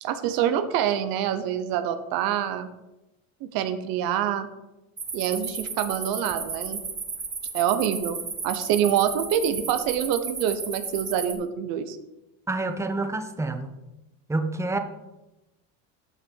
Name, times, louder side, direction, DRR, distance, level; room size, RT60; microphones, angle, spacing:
voice 1, 0.0-2.7 3.4-4.5 5.1-6.8 7.5-8.2 8.4-12.0, right 9 dB, 75° right, 10 dB, 1.0 m, -26 dB
sound 1, 5.0-11.3, right 5 dB, 25° right, 1.8 m, -34 dB
voice 2, 12.5-13.7 14.3-14.8, right 2 dB, 10° right, 7 dB, 1.0 m, -28 dB
12.5 x 6.4 x 4.7 m, 0.98 s
supercardioid pair, 105°, 36 cm